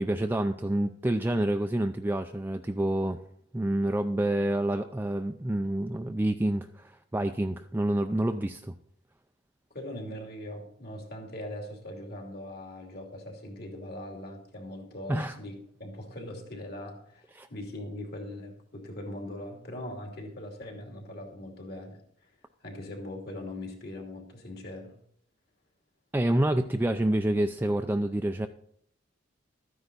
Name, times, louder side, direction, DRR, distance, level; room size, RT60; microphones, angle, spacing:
voice 1, 0.0-3.2 3.5-8.7 15.1-15.3 17.3-17.5 26.1-28.5, right 1 dB, 10° right, 6 dB, 0.4 m, -28 dB
voice 2, 9.7-22.3 22.6-24.9, left 1 dB, 55° left, 2 dB, 2.8 m, -41 dB
13.0 x 9.7 x 4.0 m, 0.66 s
head